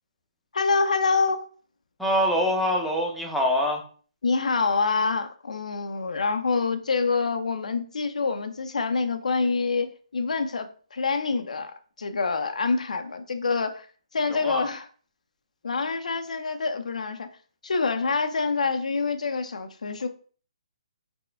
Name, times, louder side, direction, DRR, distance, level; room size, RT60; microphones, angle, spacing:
voice 1, 0.5-1.4 4.2-13.9 14.1-14.9 15.6-17.3 17.6-20.1, left 4 dB, 85° left, 0.5 m, -26 dB
voice 2, 2.0-3.8 14.3-14.6, equal, ahead, 0.6 m, -24 dB
4.2 x 2.2 x 3.3 m
hypercardioid pair, 155°, 4 cm